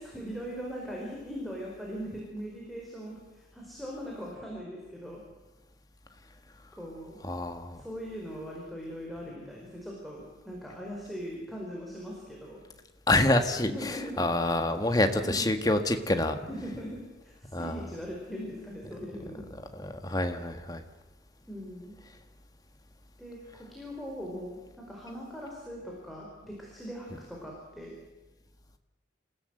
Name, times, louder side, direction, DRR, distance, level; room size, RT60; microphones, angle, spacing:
voice 1, 0.0-5.2 6.7-7.2 7.7-12.6 13.6-14.3 14.9-15.5 16.5-19.5 21.5-22.0 23.2-27.9, equal, ahead, -3 dB, 4.4 m, -40 dB
voice 2, 7.2-7.8 13.1-16.4 17.5-17.8 19.8-20.8, left 1 dB, 20° left, 6 dB, 1.7 m, -27 dB
27.5 x 16.0 x 8.0 m, 1.2 s
head